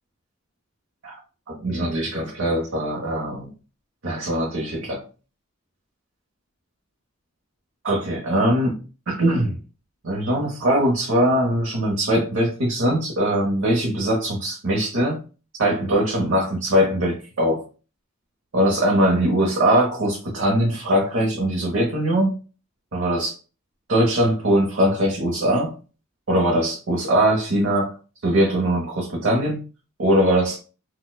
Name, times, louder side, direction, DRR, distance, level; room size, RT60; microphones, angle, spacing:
voice 1, 1.5-3.5 4.0-5.0 7.8-8.7 9.1-9.6 10.0-15.2 15.6-17.6 18.5-22.4 22.9-23.4 23.9-25.7 26.3-27.9 28.2-29.6 30.0-30.6, right 1 dB, 65° right, -1 dB, 0.8 m, -21 dB
4.2 x 2.2 x 2.3 m, 0.35 s
head